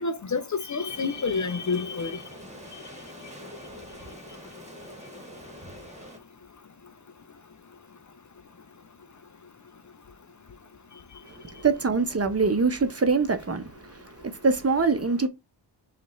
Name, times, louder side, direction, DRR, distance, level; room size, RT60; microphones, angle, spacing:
voice 1, 0.0-2.2, left 4 dB, 40° left, 0.5 m, -28 dB
sound 1, 0.9-6.2, equal, 15° right, 1.4 m, -45 dB
voice 2, 11.2-15.3, right 4 dB, 35° right, 0.7 m, -24 dB
5.3 x 2.5 x 3.0 m
wide cardioid pair, 90°, 44 cm